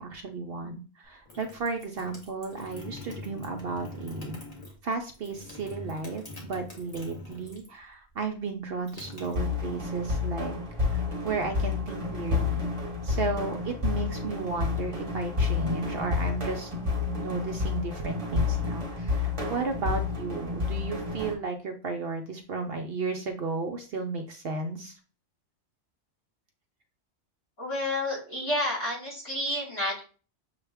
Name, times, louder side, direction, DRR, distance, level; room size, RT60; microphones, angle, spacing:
voice 1, 0.0-4.4 4.8-10.6 10.9-12.7 13.0-25.0, right 4 dB, 60° right, 4 dB, 0.7 m, -34 dB
sound 1, 1.0-7.8 8.1-10.0, left 2 dB, 30° left, 1.4 m, -44 dB
sound 2, 9.4-21.3, left 4 dB, 30° right, 1.0 m, -30 dB
voice 2, 27.6-30.0, left 1 dB, 60° left, -6 dB, 3.1 m, -30 dB
6.6 x 2.3 x 3.4 m, 0.36 s
omnidirectional pair, 1.2 m